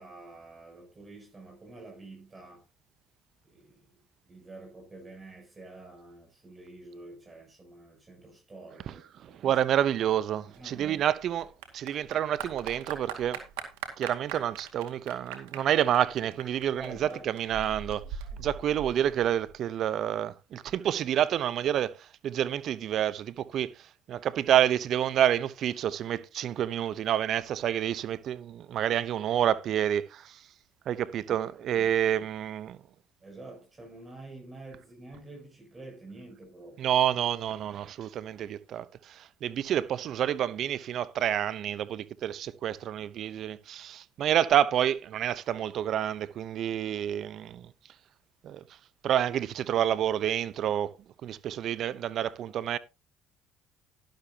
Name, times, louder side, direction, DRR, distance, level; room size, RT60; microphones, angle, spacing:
voice 1, 0.0-2.6 3.4-3.9 4.2-9.6 10.4-11.0 16.8-17.2 33.2-37.0, right 2 dB, 25° right, 7.6 m, -47 dB
voice 2, 9.2-13.4 14.0-18.0 18.4-30.4 30.9-32.8 36.8-47.7 48.4-48.6 49.0-50.9 51.2-52.8, right 10 dB, 60° right, 0.8 m, -28 dB
Clapping / Applause, 10.5-19.5, right 8 dB, 90° right, 2.1 m, -42 dB
12.0 x 12.0 x 2.9 m
supercardioid pair, 75°, 0 cm